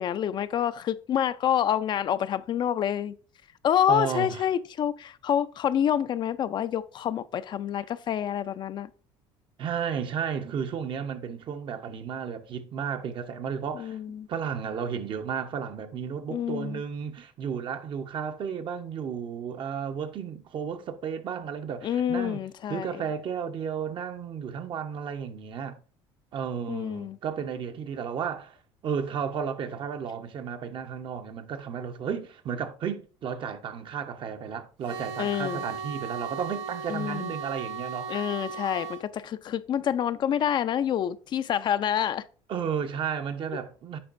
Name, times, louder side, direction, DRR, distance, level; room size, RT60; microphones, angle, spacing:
voice 1, 0.0-3.1 3.6-8.9 13.7-14.3 16.3-16.8 21.8-22.9 26.7-27.2 35.2-35.6 36.9-37.3 38.1-42.2, left 9 dB, 45° left, 0.4 m, -27 dB
voice 2, 3.9-4.5 9.6-14.0 14.3-22.4 22.7-25.8 26.3-28.6 28.8-38.2 42.5-44.0, right 7 dB, 50° right, 0.9 m, -33 dB
sound 1, 34.8-39.0, right 6 dB, 80° right, 1.0 m, -36 dB
8.6 x 5.2 x 2.5 m
cardioid pair, 105°, 11 cm